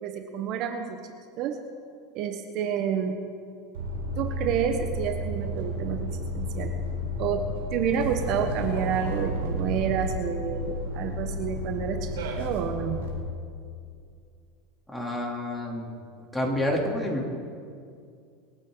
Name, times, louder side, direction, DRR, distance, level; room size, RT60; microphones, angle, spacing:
voice 1, 0.0-1.0 1.4-1.6 2.1-3.1 4.2-6.7 7.2-7.5 7.7-13.0, right 7 dB, 55° right, 5 dB, 1.2 m, -29 dB
sound 1, 3.7-13.1, equal, 85° right, 4.0 m, -32 dB
voice 2, 14.9-15.9 16.3-17.3, left 1 dB, 5° left, -1 dB, 3.3 m, -28 dB
26.5 x 8.9 x 4.1 m, 2.3 s
hypercardioid pair, 105°, 0 cm